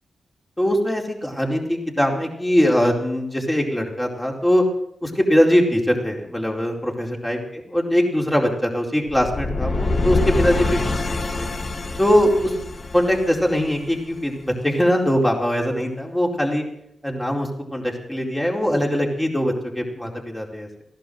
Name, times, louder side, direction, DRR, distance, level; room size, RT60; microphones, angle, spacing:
voice 1, 0.6-4.6 5.0-7.4 7.7-11.5 12.0-12.7 12.9-16.6 17.0-20.7, equal, 15° left, 0 dB, 4.5 m, -21 dB
sound 1, 9.1-14.1, left 3 dB, 45° left, 1.6 m, -25 dB
15.5 x 11.5 x 7.8 m, 0.76 s
cardioid pair, 55°, 0 cm